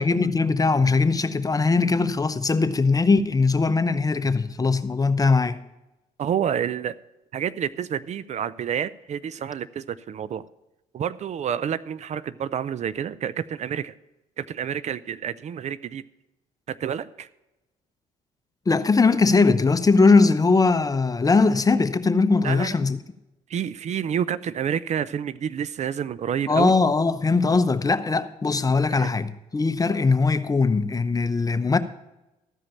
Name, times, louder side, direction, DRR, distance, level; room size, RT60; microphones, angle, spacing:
voice 1, 0.0-5.6 18.7-23.0 26.5-31.8, left 4 dB, 25° left, 0.8 m, -20 dB
voice 2, 6.2-7.0 7.3-10.5 10.9-14.0 14.4-16.0 16.7-17.3 22.4-22.7 23.5-26.7 28.9-29.1, right 8 dB, 55° right, 0.5 m, -29 dB
13.5 x 5.1 x 7.1 m
supercardioid pair, 70°, 15 cm